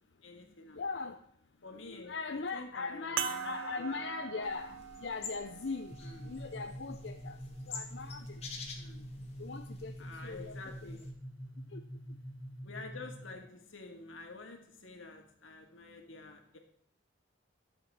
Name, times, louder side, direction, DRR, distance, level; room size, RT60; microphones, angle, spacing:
voice 1, 0.2-1.1 1.6-4.2 6.0-6.3 8.8-9.1 10.0-11.0 12.6-16.6, left 3 dB, 85° left, 3 dB, 2.0 m, -49 dB
voice 2, 0.7-1.2 1.7-5.9 6.2-7.4 7.7-8.3 9.4-9.9 10.2-10.6 11.7-11.8, left 4 dB, 60° left, 6 dB, 0.6 m, -39 dB
sound 1, 3.2-8.0 8.7-8.8 11.0-11.1, right 10 dB, 90° right, 0.5 m, -43 dB
sound 2, 4.4-11.1, left 4 dB, 30° left, 1.9 m, -49 dB
sound 3, 5.9-13.5, equal, 10° left, 0.7 m, -46 dB
11.5 x 7.5 x 4.8 m, 0.67 s
head